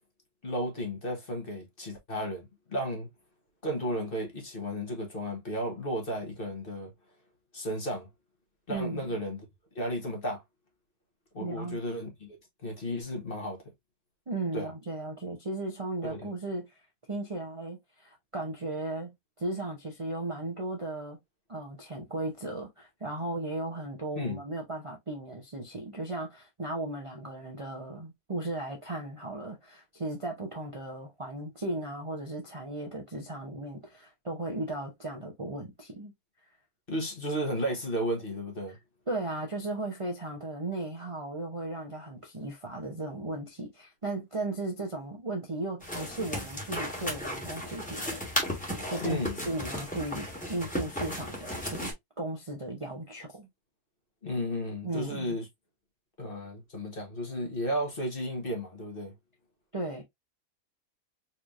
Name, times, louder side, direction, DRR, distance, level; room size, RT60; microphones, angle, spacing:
voice 1, 0.4-3.1 3.6-6.9 7.5-8.1 8.7-9.4 9.7-10.4 11.3-12.4 12.6-13.6 14.5-14.7 16.0-16.3 24.1-24.4 36.9-38.8 49.0-49.4 54.2-55.5 56.2-59.1, equal, 40° left, 1.4 m, -33 dB
voice 2, 8.7-9.2 11.4-11.8 14.3-21.2 21.5-36.1 38.7-38.8 39.1-51.9 52.2-53.5 54.8-55.4 59.7-60.0, right 2 dB, 30° right, 0.7 m, -36 dB
sound 1, 45.8-51.9, left 1 dB, 5° left, 1.4 m, -35 dB
4.3 x 3.2 x 2.5 m
omnidirectional pair, 1.5 m